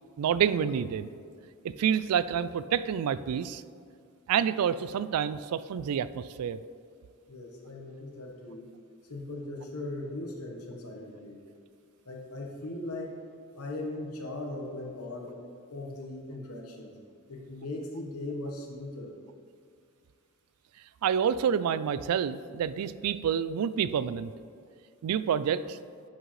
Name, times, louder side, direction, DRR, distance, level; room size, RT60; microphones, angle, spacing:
voice 1, 0.2-1.1 1.6-3.6 4.3-6.6 21.0-24.3 25.0-25.8, right 8 dB, 90° right, 16 dB, 0.3 m, -28 dB
voice 2, 7.3-8.7 9.0-11.4 12.0-13.2 13.5-16.9 17.3-19.1, left 2 dB, 85° left, 1 dB, 1.2 m, -39 dB
10.0 x 6.3 x 3.2 m, 2.2 s
head